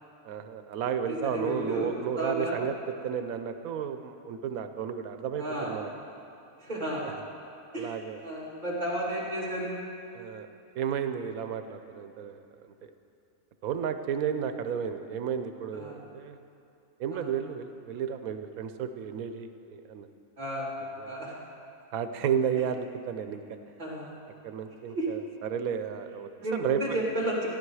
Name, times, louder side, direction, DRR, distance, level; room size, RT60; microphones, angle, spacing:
voice 1, 0.2-5.9 7.0-7.1 7.7-8.2 10.1-10.5 10.7-12.9 13.6-16.4 17.0-20.1 21.0-21.1 21.9-23.6 24.4-27.0, right 7 dB, 85° right, 9 dB, 1.1 m, -33 dB
voice 2, 1.1-2.6 5.4-5.7 6.6-7.1 7.7-9.8 15.7-16.0 17.1-17.3 20.4-20.7 21.0-21.3 23.8-24.1 24.9-25.1 26.4-27.5, right 1 dB, 30° right, -5 dB, 2.8 m, -32 dB
14.5 x 10.5 x 4.8 m, 2.6 s
omnidirectional pair, 1.5 m